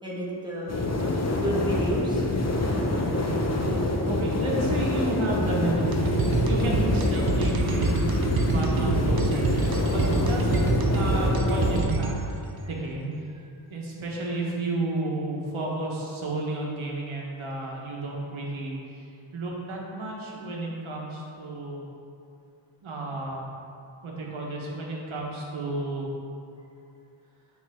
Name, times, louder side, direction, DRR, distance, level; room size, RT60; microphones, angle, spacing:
voice 1, 0.0-1.0 1.3-2.2 6.6-6.9 8.5-9.1, equal, 10° right, -6 dB, 1.6 m, -31 dB
sound 1, 0.7-11.8, left 2 dB, 35° left, 0.8 m, -26 dB
voice 2, 3.0-3.4 4.0-8.0 8.4-12.1 12.7-13.1 13.7-19.0 19.3-21.8 22.8-23.4 24.0-26.1, right 2 dB, 80° right, -2 dB, 1.4 m, -32 dB
sound 2, 5.9-12.5, right 3 dB, 50° right, 0.7 m, -27 dB
9.2 x 4.4 x 3.6 m, 2.5 s
wide cardioid pair, 95°, 48 cm